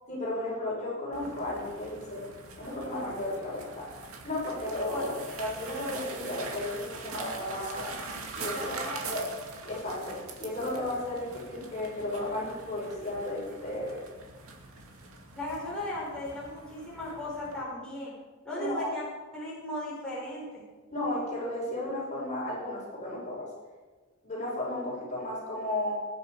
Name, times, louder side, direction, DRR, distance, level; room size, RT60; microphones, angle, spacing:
voice 1, 0.1-2.2 2.6-3.9 4.2-5.1 5.4-7.9 8.4-9.3 9.6-14.0 18.6-19.0 20.9-23.5 24.2-25.9, left 1 dB, 35° left, -5 dB, 5.5 m, -34 dB
sound 1, 1.1-17.6, right 4 dB, 90° right, 2.2 m, -43 dB
voice 2, 8.4-8.9 15.4-18.1 18.4-19.0 19.3-20.6, left 1 dB, 5° left, -8 dB, 4.8 m, -36 dB
19.5 x 10.0 x 4.9 m, 1.3 s
head